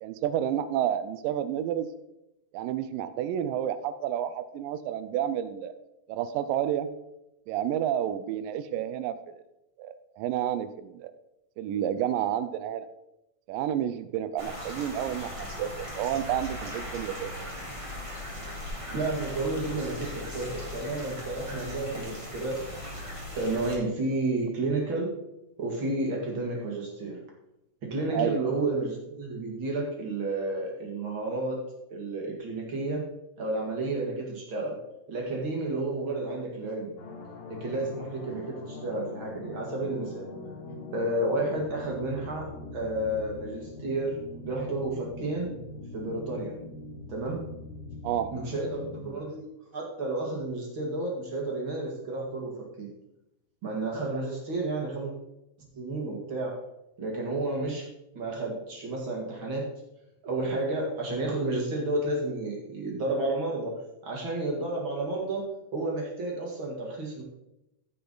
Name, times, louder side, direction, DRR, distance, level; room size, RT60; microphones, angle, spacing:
voice 1, 0.0-1.9 2.5-5.7 6.1-6.9 7.5-9.4 9.8-11.1 11.6-12.9 13.5-17.3 28.1-28.4 48.0-48.4, right 10 dB, 85° right, 12 dB, 2.3 m, -30 dB
sound 1, 14.4-23.8, left 1 dB, 10° right, 1.9 m, -39 dB
voice 2, 18.9-22.6 23.3-25.1 25.6-27.2 27.8-31.6 31.9-33.1 33.4-34.7 35.1-36.9 37.5-40.2 40.7-44.2 44.4-45.5 45.9-46.5 47.1-47.4 48.3-49.4 49.7-52.5 52.8-52.9 53.6-55.1 55.7-56.5 57.0-57.9 58.1-59.6 60.2-63.7 64.0-65.5 65.7-67.2, right 2 dB, 40° right, -2 dB, 2.5 m, -31 dB
sound 2, 37.0-49.2, left 2 dB, 90° left, 3.1 m, -42 dB
15.0 x 5.9 x 3.9 m, 0.89 s
omnidirectional pair, 3.9 m